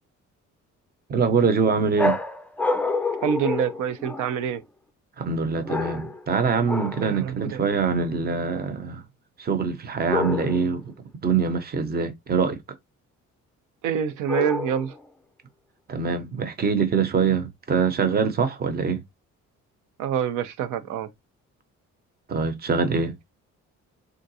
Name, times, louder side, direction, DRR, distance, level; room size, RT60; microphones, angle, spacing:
voice 1, 1.1-2.2 5.2-9.0 9.4-10.9 11.2-12.6 15.9-19.0 22.3-23.1, right 5 dB, 30° right, 0.7 m, -24 dB
sound 1, 2.0-4.5 5.6-6.3 6.7-7.1 10.1-10.8 14.3-15.0, left 3 dB, 5° left, 0.4 m, -28 dB
voice 2, 3.2-4.6 7.0-7.6 13.8-14.9 20.0-21.1, right 8 dB, 90° right, 0.5 m, -26 dB
3.7 x 2.2 x 2.7 m
cardioid pair, 90°, 30 cm